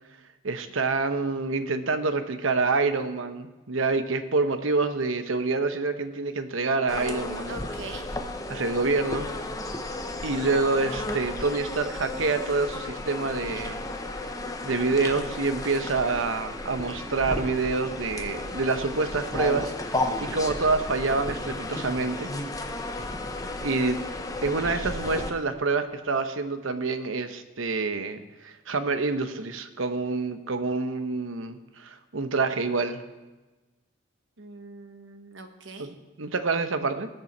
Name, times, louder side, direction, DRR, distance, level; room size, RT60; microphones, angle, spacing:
voice 1, 0.4-7.6 8.5-9.3 10.2-13.9 14.6-22.3 23.6-24.0 24.4-33.0 35.8-37.1, right 3 dB, 85° right, 9 dB, 0.9 m, -27 dB
sound 1, 6.9-25.3, left 2 dB, 15° left, 0.7 m, -33 dB
voice 2, 7.5-8.1 34.4-35.9, right 3 dB, 70° right, 6 dB, 1.2 m, -42 dB
19.5 x 6.8 x 4.4 m, 1.1 s
head